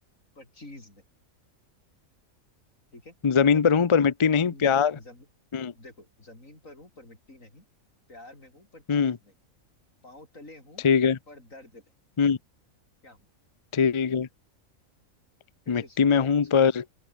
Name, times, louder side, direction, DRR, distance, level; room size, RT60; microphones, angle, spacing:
voice 1, 0.4-1.0 2.9-3.2 3.5-4.1 4.4-5.3 5.8-7.7 8.1-9.3 10.0-10.8 11.3-11.9 13.0-13.3 15.7-16.5, left 2 dB, 70° left, 7.3 m, -49 dB
voice 2, 3.2-5.0 5.5-5.7 8.9-9.2 10.8-11.2 12.2-12.4 13.7-14.3 15.7-16.8, left 6 dB, 40° left, 0.4 m, -21 dB
omnidirectional pair, 1.4 m